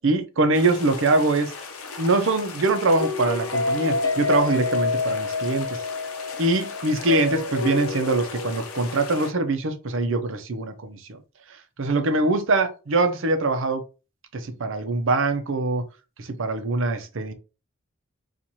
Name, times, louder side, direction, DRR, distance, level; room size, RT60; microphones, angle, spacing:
voice 1, 0.0-1.5 2.0-5.8 6.4-11.2 11.8-13.8 14.3-15.8 16.2-17.3, right 2 dB, 65° right, 0.6 m, -23 dB
sound 1, 0.5-9.3, left 4 dB, 85° left, 0.7 m, -29 dB
4.4 x 2.5 x 2.7 m
head